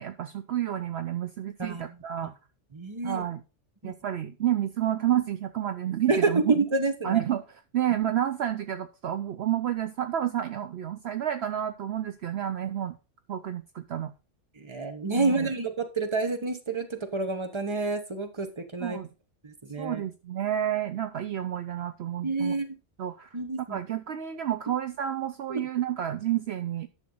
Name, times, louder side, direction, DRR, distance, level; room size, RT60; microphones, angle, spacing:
voice 1, 0.0-2.3 3.0-3.4 3.8-6.6 7.0-7.4 7.7-12.9 13.3-14.1 15.1-15.5 18.8-19.1 19.8-22.6 23.0-23.3 23.7-26.9, right 11 dB, 65° right, 8 dB, 0.8 m, -30 dB
voice 2, 1.6-2.0 2.7-3.2 3.8-3.9 6.1-7.2 14.6-19.0 19.4-20.0 22.2-22.7 23.3-23.8 25.5-25.6, right 3 dB, 25° right, 7 dB, 1.2 m, -28 dB
10.5 x 6.6 x 4.0 m, 0.31 s
omnidirectional pair, 1.2 m